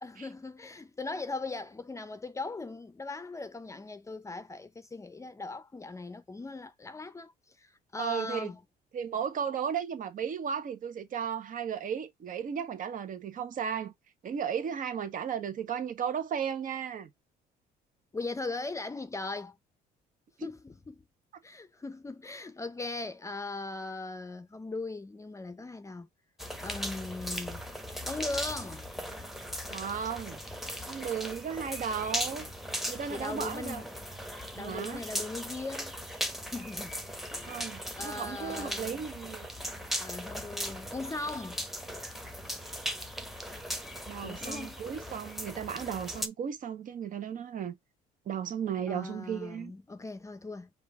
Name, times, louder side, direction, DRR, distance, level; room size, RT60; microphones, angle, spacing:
voice 1, 0.0-8.6 18.1-19.6 20.4-21.0 21.4-26.1 26.6-27.6 28.1-28.9 33.1-33.9 34.5-36.0 36.4-37.0 37.3-39.1 40.0-41.6 44.2-44.8 48.9-50.7, left 3 dB, 20° left, 0.6 m, -39 dB
voice 2, 8.0-8.5 8.9-13.9 14.2-17.1 29.7-30.4 30.9-32.5 32.9-33.8 34.6-35.0 37.4-39.5 44.1-47.8 48.3-49.7, right 8 dB, 50° right, 1.2 m, -35 dB
sound 1, 26.4-46.3, equal, ahead, 0.9 m, -38 dB
5.2 x 2.6 x 3.6 m
cardioid pair, 110°, 17 cm